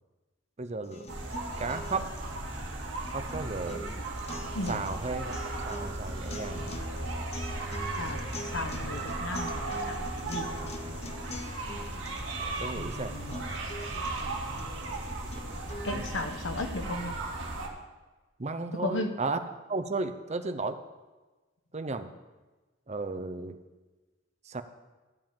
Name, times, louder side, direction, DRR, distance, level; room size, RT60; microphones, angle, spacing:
voice 1, 0.6-1.1 1.6-2.1 3.1-3.9 4.7-6.7 12.4-13.6 18.4-19.4 19.7-20.8 21.7-22.1 22.9-23.6 24.5-24.6, right 3 dB, 35° right, 9 dB, 0.7 m, -34 dB
sound 1, 0.8-16.8, left 1 dB, 35° left, 0.8 m, -44 dB
sound 2, 1.1-17.7, right 2 dB, 85° right, 2.2 m, -36 dB
voice 2, 8.0-10.6 12.8-13.4 15.8-17.1 18.8-19.1, left 2 dB, 80° left, 6 dB, 1.2 m, -35 dB
13.0 x 5.5 x 8.8 m, 1.2 s
head